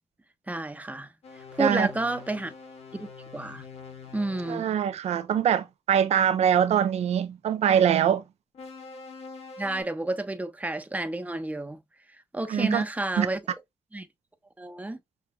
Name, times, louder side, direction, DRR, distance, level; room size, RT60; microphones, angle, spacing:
voice 1, 0.5-1.1 1.5-2.5 2.9-3.1 3.3-3.6 4.1-4.6 9.6-11.8 12.3-13.4 13.9-14.1 14.6-15.0, right 2 dB, 15° right, 1.0 m, -30 dB
sound 1, 1.2-4.7 8.5-9.8, left 5 dB, 75° left, 1.7 m, -44 dB
voice 2, 4.5-8.2 12.5-12.8 13.2-13.3, right 9 dB, 85° right, 0.6 m, -23 dB
6.2 x 2.6 x 2.2 m
cardioid pair, 70°, 11 cm